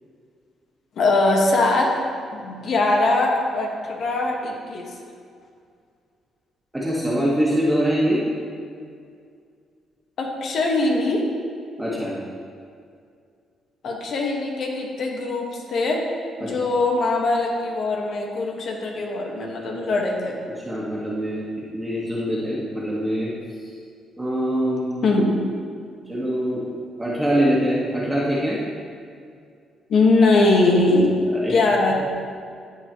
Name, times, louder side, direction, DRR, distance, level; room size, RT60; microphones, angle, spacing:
voice 1, 1.0-1.9 2.3-4.9 10.2-11.3 13.8-16.1 16.4-20.4 25.0-25.3 29.9-31.1 31.5-32.0, left 2 dB, 65° left, 0 dB, 1.6 m, -21 dB
voice 2, 6.7-8.2 11.8-12.2 16.4-16.6 20.6-21.5 21.7-23.3 23.6-23.7 24.2-25.1 26.1-26.6 27.0-28.6 31.3-31.6, equal, 10° right, -7 dB, 1.8 m, -23 dB
14.5 x 6.1 x 3.1 m, 2.3 s
cardioid pair, 90°, 0 cm